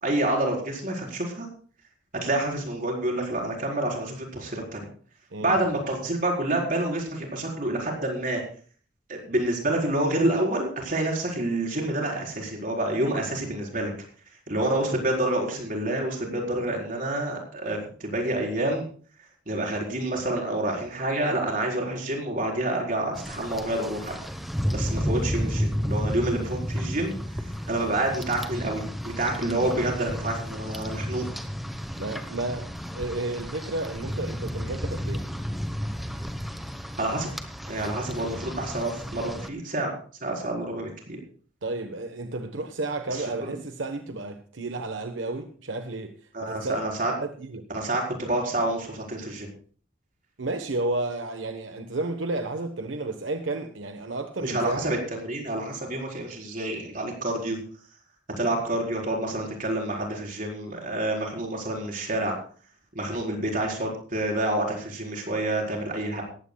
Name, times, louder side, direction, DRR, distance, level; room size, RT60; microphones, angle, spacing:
voice 1, 0.0-1.5 2.2-4.8 5.4-8.4 9.1-13.9 14.5-18.9 19.5-24.2 24.7-27.1 27.7-31.3 37.0-37.3 37.7-39.9 40.2-40.9 43.1-43.5 46.3-47.1 47.7-49.5 54.4-57.6 58.4-62.3 62.9-66.2, right 1 dB, 45° right, 4.5 m, -28 dB
Rain, 23.1-39.5, equal, ahead, 1.0 m, -32 dB
voice 2, 32.0-35.2 41.6-46.2 46.4-46.8 47.2-47.7 50.4-54.9, right 2 dB, 85° right, 1.1 m, -32 dB
19.0 x 15.0 x 2.3 m
head